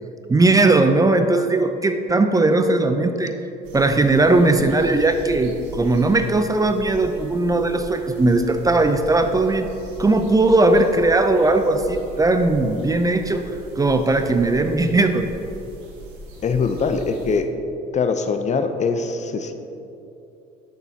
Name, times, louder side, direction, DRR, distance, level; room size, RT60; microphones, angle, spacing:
voice 1, 0.3-3.4 3.7-9.7 10.0-15.3, right 2 dB, 20° right, 7 dB, 0.5 m, -18 dB
sound 1, 3.6-17.4, right 1 dB, 85° right, 1.9 m, -39 dB
voice 2, 16.4-17.5 17.9-19.5, left 5 dB, 40° left, 8 dB, 0.7 m, -22 dB
12.0 x 6.9 x 2.9 m, 2.8 s
supercardioid pair, 90°, 19 cm